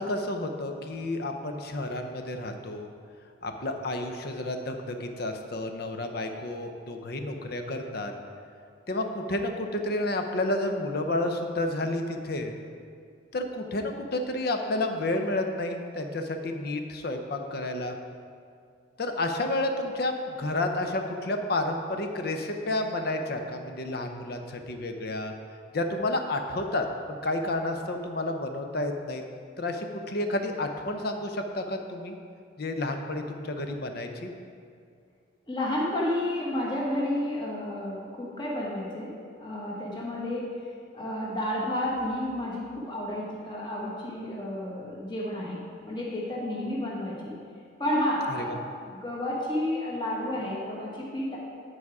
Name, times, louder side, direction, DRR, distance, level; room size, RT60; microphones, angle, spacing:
voice 1, 0.0-2.9 3.4-8.1 8.9-12.5 13.3-17.9 19.0-25.3 25.7-29.2 29.6-32.2 32.6-34.3 48.3-48.6, left 2 dB, 50° left, 5 dB, 0.6 m, -30 dB
voice 2, 35.5-40.6 40.9-47.3 47.8-51.4, left 1 dB, 25° left, -5 dB, 1.3 m, -31 dB
9.8 x 4.8 x 4.7 m, 2.3 s
head